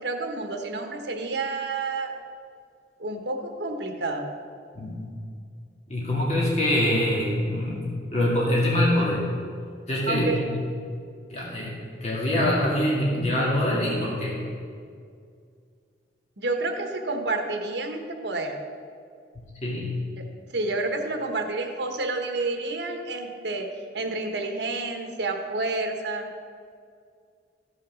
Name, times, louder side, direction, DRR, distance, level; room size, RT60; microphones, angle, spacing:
voice 1, 0.0-2.1 3.0-4.3 10.1-10.4 16.4-18.5 20.2-20.3 20.5-23.7 23.9-26.3, right 3 dB, 80° right, 4 dB, 1.3 m, -29 dB
voice 2, 4.7-5.1 5.9-9.2 9.9-10.5 11.3-11.7 12.0-14.4 19.6-19.9, left 1 dB, 40° left, -5 dB, 2.1 m, -24 dB
14.0 x 5.6 x 6.3 m, 2.2 s
head